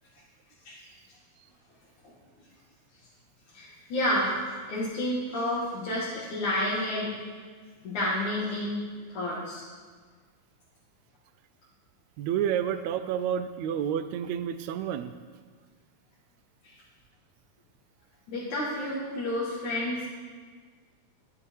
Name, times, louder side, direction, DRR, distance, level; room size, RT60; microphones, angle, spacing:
voice 1, 3.5-4.4 4.7-7.1 7.8-8.8 9.1-9.6 16.6-16.8 18.3-20.1, left 1 dB, 80° left, -7 dB, 3.6 m, -30 dB
voice 2, 12.2-15.1, right 9 dB, 75° right, 11 dB, 1.9 m, -29 dB
15.5 x 11.0 x 4.7 m, 1.5 s
omnidirectional pair, 3.4 m